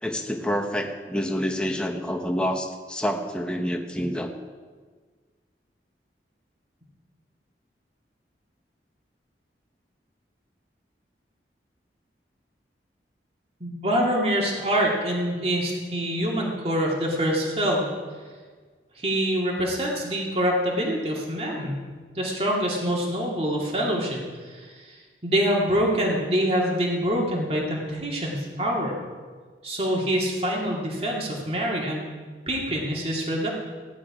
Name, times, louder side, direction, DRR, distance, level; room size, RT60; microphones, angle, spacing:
voice 1, 0.0-4.3, equal, 5° left, 3 dB, 1.0 m, -28 dB
voice 2, 13.6-17.9 19.0-21.7 22.2-28.9 29.6-32.1 32.5-33.5, equal, 35° right, -2 dB, 2.3 m, -25 dB
16.0 x 10.5 x 4.9 m, 1.5 s
head